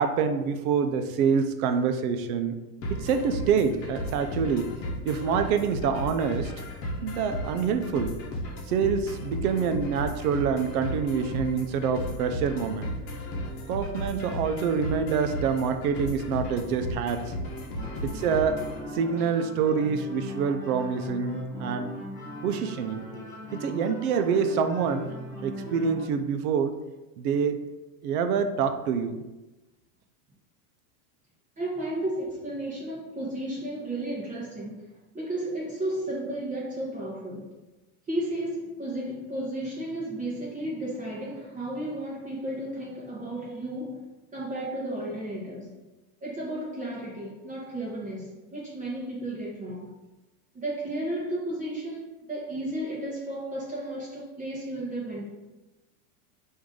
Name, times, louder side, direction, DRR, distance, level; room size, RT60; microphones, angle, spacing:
voice 1, 0.0-2.6 2.9-4.7 5.0-6.5 7.0-8.1 8.7-12.9 13.7-17.3 18.0-18.6 18.9-21.9 22.4-23.1 23.5-25.1 25.4-26.7 27.2-27.6 28.0-29.2, right 6 dB, 75° right, 8 dB, 0.6 m, -26 dB
sound 1, 2.8-18.8, equal, 55° left, 0.9 m, -35 dB
sound 2, 17.7-26.1, equal, 10° left, 0.4 m, -39 dB
voice 2, 18.5-19.3 22.9-23.5 31.6-34.9 35.1-37.5 38.1-44.0 44.3-45.7 46.2-50.0 50.5-55.3, right 1 dB, 15° right, -5 dB, 0.8 m, -34 dB
4.7 x 2.7 x 3.7 m, 1.1 s
supercardioid pair, 140°, 44 cm